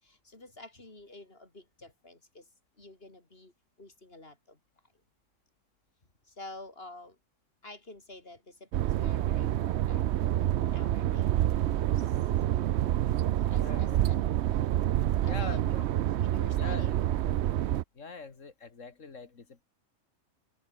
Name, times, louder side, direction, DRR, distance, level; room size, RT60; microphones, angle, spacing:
voice 1, 0.0-2.5 2.8-3.5 3.8-4.6 6.2-7.2 7.6-10.1 10.6-12.2 13.2-14.2 15.2-17.4, left 2 dB, 50° left, 4.5 m, -50 dB
sound 1, 8.7-17.8, right 12 dB, 65° right, 0.8 m, -27 dB
voice 2, 13.6-14.3 15.3-15.8 16.5-17.0 17.9-19.6, left 4 dB, 75° left, 2.5 m, -43 dB
open air
omnidirectional pair, 1.3 m